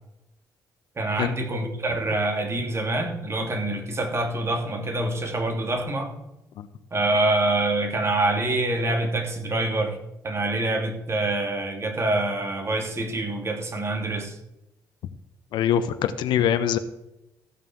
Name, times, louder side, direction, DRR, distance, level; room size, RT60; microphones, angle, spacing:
voice 1, 1.0-6.1 6.9-10.0 10.2-14.4, right 2 dB, 35° right, 4 dB, 2.9 m, -26 dB
voice 2, 15.5-16.8, left 9 dB, 75° left, 11 dB, 0.9 m, -23 dB
15.0 x 5.6 x 7.8 m, 0.88 s
supercardioid pair, 65°, 8 cm